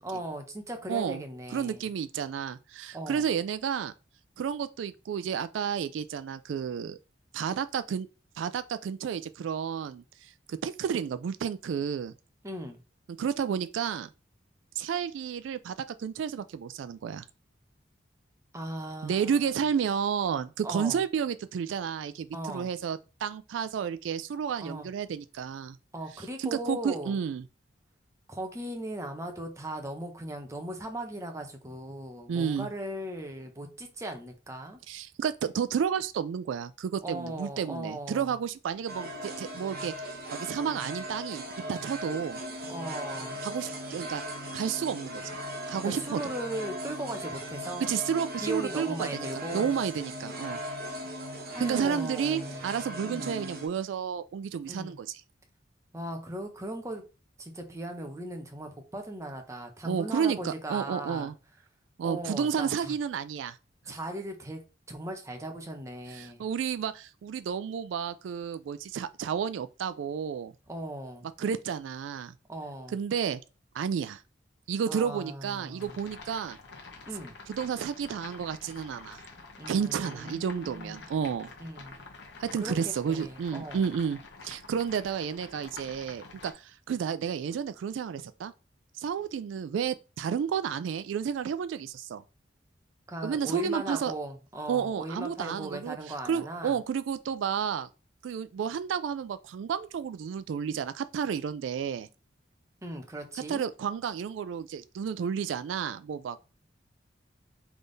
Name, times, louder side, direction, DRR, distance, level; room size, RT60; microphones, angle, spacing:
voice 1, 0.0-1.9 2.9-3.2 12.4-12.8 18.5-19.7 20.6-21.0 22.3-22.7 24.6-24.9 25.9-27.1 28.3-34.8 37.0-38.3 42.7-43.4 45.7-47.9 48.4-49.7 51.5-52.6 53.0-53.3 54.6-55.0 55.9-57.0 57.4-61.3 62.0-62.9 63.9-64.6 64.9-66.4 70.7-71.3 72.5-73.0 74.9-76.0 77.0-77.3 79.6-81.1 81.6-82.0 82.6-82.7 83.1-83.9 93.1-96.8 102.8-103.6, right 1 dB, 15° right, 0.8 m, -38 dB
voice 2, 0.9-1.2 1.5-3.9 4.4-7.0 7.3-8.1 8.4-12.1 13.2-14.1 14.8-17.2 19.0-25.8 26.2-27.4 32.3-32.7 34.9-42.4 43.4-44.2 44.5-45.3 45.7-46.2 47.8-50.6 51.6-55.2 59.8-61.3 62.0-63.6 66.1-70.5 71.4-72.3 72.9-73.4 73.7-74.2 74.7-76.6 77.5-79.2 79.7-81.5 82.4-88.5 89.0-92.2 93.2-94.1 94.7-97.9 98.2-102.1 103.5-106.4, right 7 dB, 85° right, 0.3 m, -31 dB
sound 1, 38.9-53.7, equal, 55° right, 1.1 m, -38 dB
sound 2, 75.8-86.5, left 3 dB, 65° left, 1.0 m, -48 dB
3.6 x 3.4 x 3.9 m
head